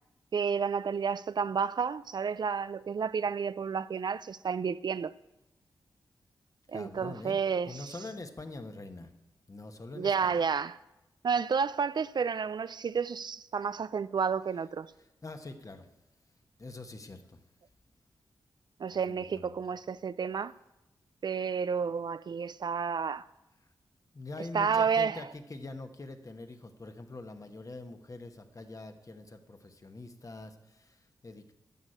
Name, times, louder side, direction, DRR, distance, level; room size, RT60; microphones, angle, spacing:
voice 1, 0.3-5.1 6.7-7.9 10.0-10.8 11.2-14.9 18.8-20.5 21.2-23.2 24.5-25.2, right 6 dB, 55° right, 0.4 m, -31 dB
voice 2, 6.7-7.4 7.7-9.1 9.5-10.4 15.2-15.9 16.6-17.4 18.9-19.6 24.1-31.5, left 2 dB, 40° left, 1.3 m, -44 dB
11.0 x 6.4 x 8.7 m
cardioid pair, 45°, 9 cm